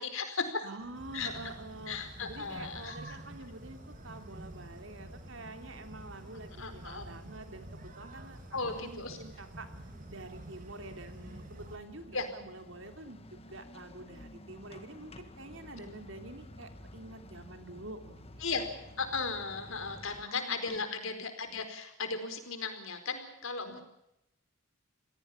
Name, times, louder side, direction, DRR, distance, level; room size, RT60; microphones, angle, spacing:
voice 1, 0.0-0.6 1.1-1.3 1.9-3.2 6.6-7.1 8.5-9.2 12.1-12.3 18.4-18.7 19.0-23.8, left 4 dB, 70° left, 8 dB, 4.5 m, -36 dB
voice 2, 0.6-2.0 2.3-8.4 8.7-9.7 10.1-18.4 20.2-21.0 23.6-23.8, right 2 dB, 60° right, 7 dB, 3.1 m, -47 dB
sound 1, 0.8-20.2, left 1 dB, 25° left, 1.8 m, -54 dB
sound 2, 0.9-11.8, right 1 dB, 40° right, 3.0 m, -48 dB
27.0 x 17.5 x 7.2 m, 0.84 s
head